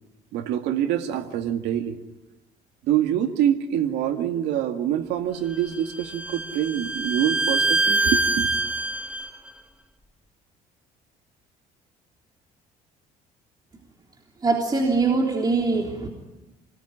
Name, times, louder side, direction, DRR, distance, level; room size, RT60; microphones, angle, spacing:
voice 1, 0.3-2.0 2.9-8.5, right 10 dB, 85° right, 5 dB, 2.2 m, -25 dB
Bowed string instrument, 5.5-9.3, right 2 dB, 5° right, 2.2 m, -25 dB
voice 2, 14.4-16.1, right 3 dB, 25° right, 1 dB, 3.5 m, -22 dB
28.0 x 20.0 x 10.0 m, 1.0 s
cardioid pair, 110°, 17 cm